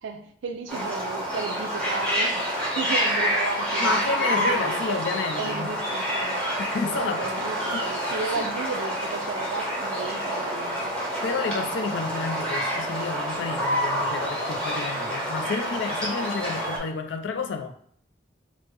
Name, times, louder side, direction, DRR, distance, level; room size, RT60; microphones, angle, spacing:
voice 1, 0.0-5.0 5.4-6.5 6.8-10.9, right 4 dB, 75° right, 7 dB, 0.4 m, -34 dB
sound 1, 0.7-16.8, equal, 5° left, 0.7 m, -27 dB
voice 2, 3.8-5.7 6.6-7.2 7.7-7.8 8.4-8.5 10.1-10.2 11.2-17.7, left 4 dB, 65° left, 5 dB, 0.4 m, -31 dB
3.2 x 2.0 x 3.2 m, 0.62 s
head